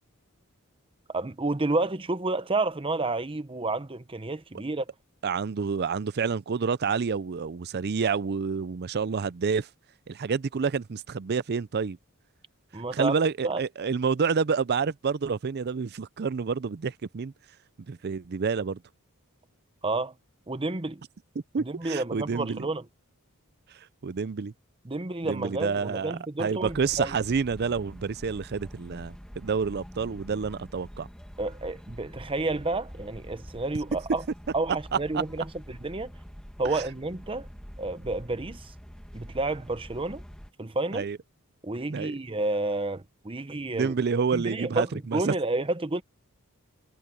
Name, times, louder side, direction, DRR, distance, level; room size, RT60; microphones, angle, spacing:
voice 1, 1.1-4.8 12.7-13.2 13.4-13.6 19.8-20.1 20.5-21.0 21.6-22.8 24.8-27.2 31.4-34.2 34.5-36.1 36.6-37.5 37.8-38.7 39.1-40.2 40.6-41.1 41.6-43.9 44.3-46.0, right 2 dB, 25° right, 0.9 m, -30 dB
voice 2, 5.2-9.7 10.1-12.0 12.9-17.3 17.9-18.8 21.5-22.7 24.0-24.5 25.2-31.1 34.9-35.2 36.7-36.8 40.9-41.2 41.9-42.2 43.7-45.4, right 5 dB, 45° right, 0.5 m, -28 dB
sound 1, 26.6-40.5, equal, 5° left, 1.8 m, -45 dB
head